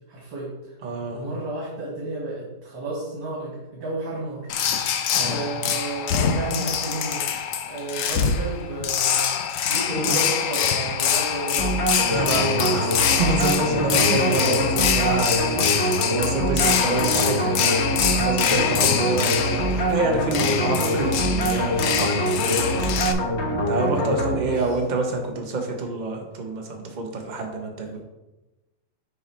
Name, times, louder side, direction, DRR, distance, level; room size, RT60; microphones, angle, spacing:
voice 1, 0.1-0.8 1.1-4.5 4.9-12.1 13.9-14.5 23.9-24.7, right 2 dB, 80° right, -5 dB, 2.3 m, -32 dB
voice 2, 0.8-1.2 5.1-5.4 9.9-10.2 12.1-22.9 23.7-28.0, right 3 dB, 35° right, 2 dB, 0.8 m, -27 dB
OM-FR-penonfence, 4.5-23.1, left 8 dB, 70° left, 0.7 m, -25 dB
sound 1, 11.6-24.9, equal, 40° left, 1.2 m, -24 dB
6.8 x 4.8 x 4.3 m, 1.0 s
omnidirectional pair, 2.0 m